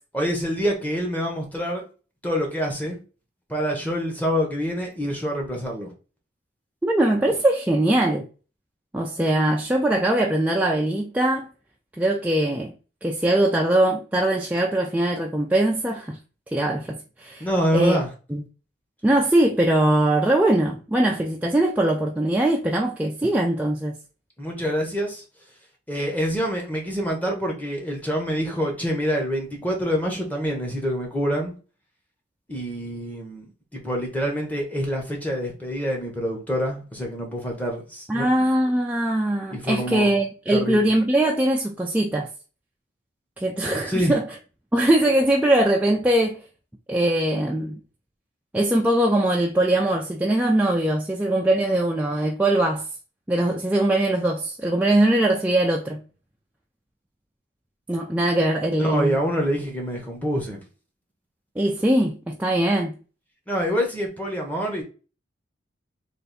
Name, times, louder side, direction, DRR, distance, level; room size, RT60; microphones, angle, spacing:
voice 1, 0.1-1.8 2.2-3.0 3.5-5.9 17.4-18.1 24.4-25.2 25.9-31.5 32.5-38.3 39.5-40.1 40.5-40.8 43.9-44.2 58.8-60.6 63.5-64.8, equal, 10° left, 0.9 m, -26 dB
voice 2, 6.8-8.3 8.9-11.5 12.0-12.7 13.0-16.2 16.5-17.5 17.7-18.0 18.3-18.4 19.0-24.0 38.1-42.3 43.4-44.3 44.7-46.4 46.9-47.8 48.5-52.8 53.3-56.0 57.9-59.1 61.6-63.0, right 1 dB, 10° right, 0.3 m, -21 dB
3.4 x 2.5 x 4.0 m
head